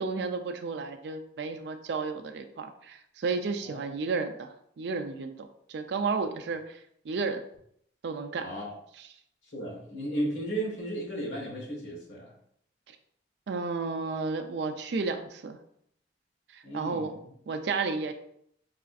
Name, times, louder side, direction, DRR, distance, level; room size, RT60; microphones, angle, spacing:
voice 1, 0.0-4.5 4.8-6.8 7.0-7.4 8.0-8.5 9.0-9.1 13.5-15.6 16.5-17.2 17.5-18.1, right 4 dB, 65° right, 7 dB, 0.4 m, -32 dB
voice 2, 8.4-8.8 9.5-12.3 16.6-17.3, right 1 dB, 80° left, -3 dB, 1.3 m, -35 dB
4.8 x 2.5 x 2.3 m, 0.70 s
head